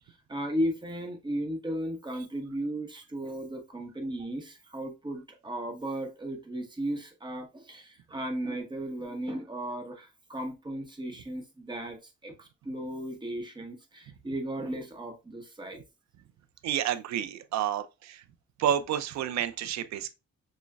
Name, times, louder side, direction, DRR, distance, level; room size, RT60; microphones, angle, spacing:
voice 1, 0.3-15.8, right 1 dB, 15° right, 1.0 m, -35 dB
voice 2, 16.6-18.2 18.6-20.1, right 10 dB, 65° right, 0.5 m, -30 dB
6.1 x 2.1 x 2.3 m
cardioid pair, 90°, 30 cm